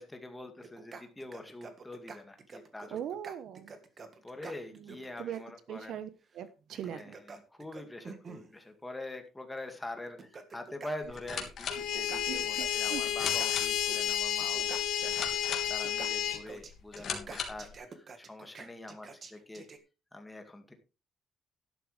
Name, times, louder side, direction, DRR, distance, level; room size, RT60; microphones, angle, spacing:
voice 1, 0.0-3.0 4.2-6.0 6.9-19.7 20.1-20.7, left 1 dB, 10° left, 5 dB, 2.1 m, -45 dB
sound 1, 0.6-5.4 6.7-8.5 9.6-9.7 10.1-11.5 11.8-14.1 14.4-19.8, right 4 dB, 30° right, 1.6 m, -47 dB
voice 2, 2.9-3.8 4.7-5.4 5.7-7.2 12.2-13.1, right 10 dB, 65° right, 13 dB, 1.1 m, -41 dB
sound 2, 11.0-17.8, left 7 dB, 45° left, 3.1 m, -41 dB
sound 3, 11.7-16.4, left 11 dB, 85° left, 1.9 m, -31 dB
12.0 x 12.0 x 3.4 m, 0.30 s
cardioid pair, 160°, 0 cm